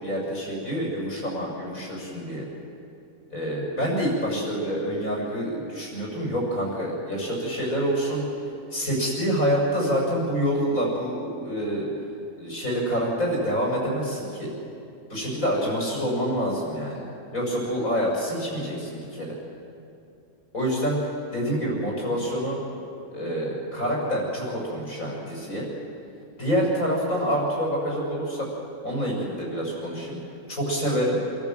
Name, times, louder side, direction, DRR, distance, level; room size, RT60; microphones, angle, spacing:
voice 1, 0.0-2.5 3.3-8.2 8.7-11.9 12.4-14.5 15.1-17.0 17.3-19.4 20.5-22.6 23.1-25.7 26.4-28.5 28.8-30.2 30.5-31.2, equal, 80° left, -3 dB, 6.9 m, -27 dB
28.5 x 14.5 x 7.7 m, 2.6 s
omnidirectional pair, 1.4 m